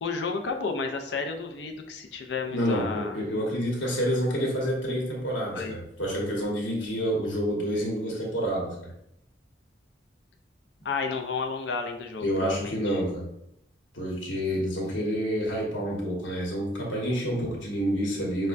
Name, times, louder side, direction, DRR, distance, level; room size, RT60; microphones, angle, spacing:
voice 1, 0.0-3.2 5.5-5.7 10.8-13.0, left 4 dB, 65° left, 4 dB, 0.5 m, -32 dB
voice 2, 2.5-8.9 12.2-13.3 13.9-18.5, equal, 80° left, -2 dB, 1.1 m, -28 dB
5.5 x 2.1 x 2.5 m, 0.78 s
head